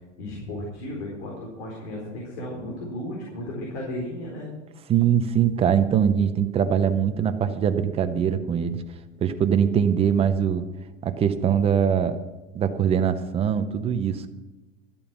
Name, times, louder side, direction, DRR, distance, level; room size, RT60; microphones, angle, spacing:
voice 1, 0.2-4.5, left 1 dB, 65° left, -2 dB, 4.3 m, -34 dB
voice 2, 4.9-8.8 9.2-10.7 11.0-12.2 12.5-14.3, right 8 dB, 15° right, 9 dB, 0.5 m, -22 dB
13.0 x 8.9 x 6.0 m, 1.1 s
supercardioid pair, 160°, 39 cm